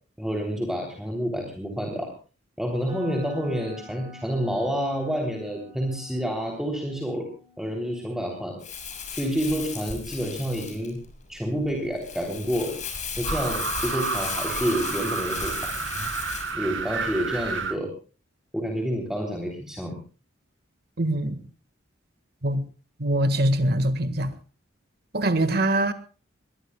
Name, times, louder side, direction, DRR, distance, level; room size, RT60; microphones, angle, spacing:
voice 1, 0.2-2.1 2.6-7.3 7.6-8.6 9.1-11.0 11.3-12.8 13.2-15.7 16.5-17.9 18.5-20.0, equal, ahead, 3.3 m, -28 dB
sound 1, 2.9-10.8, left 2 dB, 30° right, 7.3 m, -49 dB
Crumpling crinkling, 8.6-16.5, left 5 dB, 40° left, 6.8 m, -35 dB
sound 2, 13.2-17.8, right 5 dB, 70° right, 2.3 m, -30 dB
voice 2, 21.0-21.4 22.4-22.6 23.0-24.3 25.1-25.9, right 1 dB, 55° right, 1.7 m, -23 dB
24.0 x 22.0 x 2.3 m
head